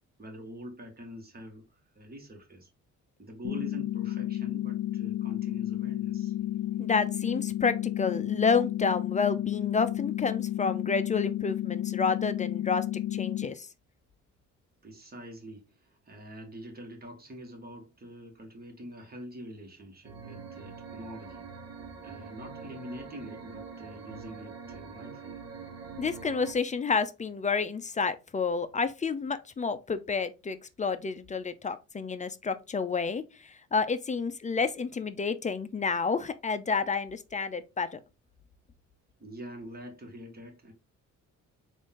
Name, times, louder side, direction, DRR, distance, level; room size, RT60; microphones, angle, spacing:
voice 1, 0.2-1.6 1.9-2.7 3.2-6.3 14.8-21.4 22.0-25.4 39.2-40.7, equal, 30° right, 1.6 m, -45 dB
sound 1, 3.4-13.5, left 13 dB, 85° left, 0.5 m, -32 dB
voice 2, 6.8-12.8 13.1-13.7 26.0-38.0, left 5 dB, 25° left, 0.5 m, -30 dB
sound 2, 20.0-26.5, right 5 dB, 55° right, 1.3 m, -44 dB
3.8 x 2.7 x 3.7 m
cardioid pair, 90°, 30 cm